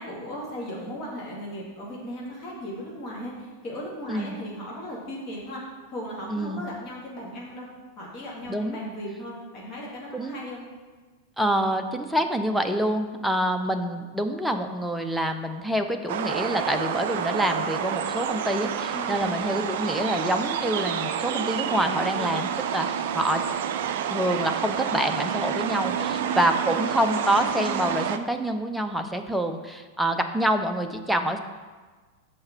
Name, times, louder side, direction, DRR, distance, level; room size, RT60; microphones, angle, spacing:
voice 1, 0.0-5.6 5.9-7.7 8.0-10.7 18.9-19.3 22.2-22.4 26.0-26.5, equal, 35° left, -5 dB, 2.0 m, -37 dB
voice 2, 6.3-6.6 8.5-8.8 10.1-10.4 11.4-23.4 24.1-31.4, right 1 dB, ahead, 5 dB, 0.5 m, -26 dB
sound 1, 16.1-28.2, right 8 dB, 55° right, 0.4 m, -29 dB
6.6 x 4.3 x 5.7 m, 1.4 s
figure-of-eight pair, 90°, 0 cm